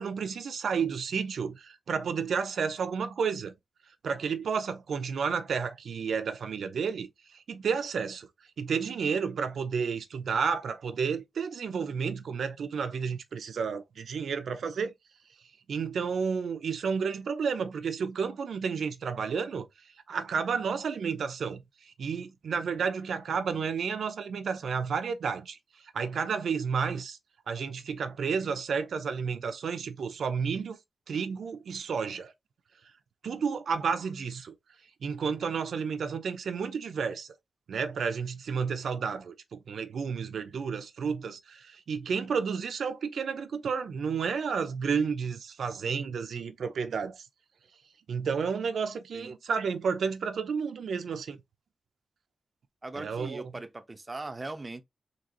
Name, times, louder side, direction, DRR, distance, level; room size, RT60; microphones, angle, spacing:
voice 1, 0.0-3.5 4.0-8.3 8.6-14.9 15.7-19.7 20.1-25.6 25.9-27.2 27.5-30.8 31.1-32.3 33.2-34.5 35.0-37.3 37.7-47.2 48.1-51.4 53.0-53.4, right 6 dB, 90° right, 0.6 m, -31 dB
voice 2, 52.8-54.8, right 2 dB, 20° right, 0.5 m, -39 dB
3.8 x 2.9 x 3.0 m
wide cardioid pair, 155°, 0 cm